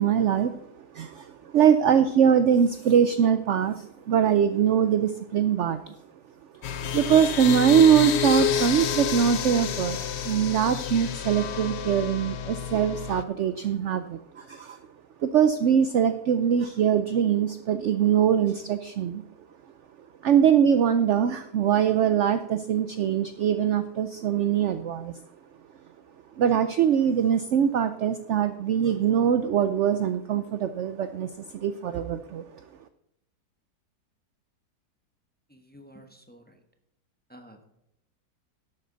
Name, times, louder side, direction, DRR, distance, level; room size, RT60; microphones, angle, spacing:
voice 1, 0.0-6.0 6.9-10.0 10.2-14.8 15.2-19.2 20.2-25.1 26.4-32.4, right 8 dB, 70° right, 11 dB, 0.6 m, -22 dB
sound 1, 6.6-13.2, left 8 dB, 65° left, 0.7 m, -29 dB
voice 2, 35.5-36.4 37.3-37.6, equal, 5° left, 4 dB, 1.0 m, -50 dB
11.5 x 8.5 x 3.9 m, 0.83 s
omnidirectional pair, 1.8 m